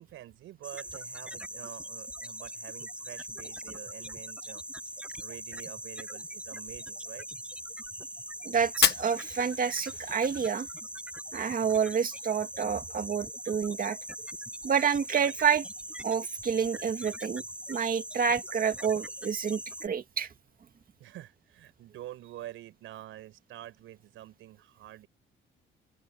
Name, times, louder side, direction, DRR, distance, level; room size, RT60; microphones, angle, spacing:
voice 1, 0.0-7.3 21.0-25.1, right 14 dB, 85° right, 6.9 m, -47 dB
sound 1, 0.6-19.9, right 1 dB, 5° right, 7.8 m, -41 dB
voice 2, 8.4-10.7 11.3-14.0 14.6-15.7 16.0-17.4 17.7-20.3, right 7 dB, 45° right, 2.1 m, -28 dB
Fire, 8.7-10.7, left 10 dB, 60° left, 1.0 m, -30 dB
open air
cardioid pair, 90°, 20 cm